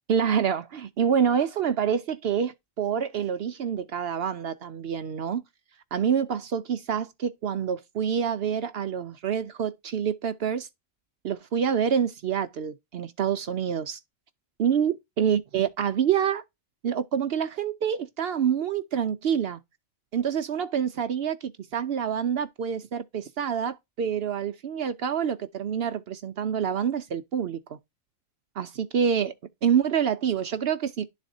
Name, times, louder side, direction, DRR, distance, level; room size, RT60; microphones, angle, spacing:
voice 1, 0.1-5.4 5.9-10.7 11.2-14.0 14.6-16.4 16.8-19.6 20.1-27.8 28.6-29.3 29.6-31.0, right 8 dB, 60° right, 0.6 m, -27 dB
11.5 x 4.1 x 2.6 m
omnidirectional pair, 1.4 m